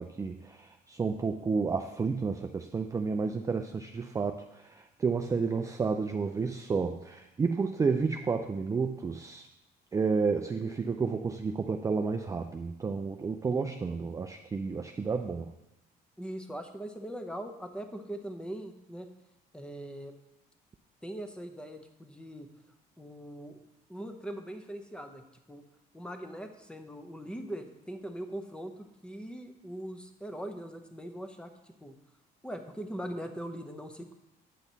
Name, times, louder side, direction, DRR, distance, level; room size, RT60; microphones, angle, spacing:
voice 1, 0.0-9.5 9.9-15.5, right 5 dB, 20° right, 6 dB, 0.4 m, -31 dB
voice 2, 16.2-19.1 19.5-20.1 21.0-22.5 23.0-23.6 23.9-25.6 25.9-31.9 32.4-34.1, right 1 dB, 5° left, 6 dB, 0.8 m, -41 dB
8.4 x 5.9 x 4.0 m, 0.89 s
cardioid pair, 110°, 17 cm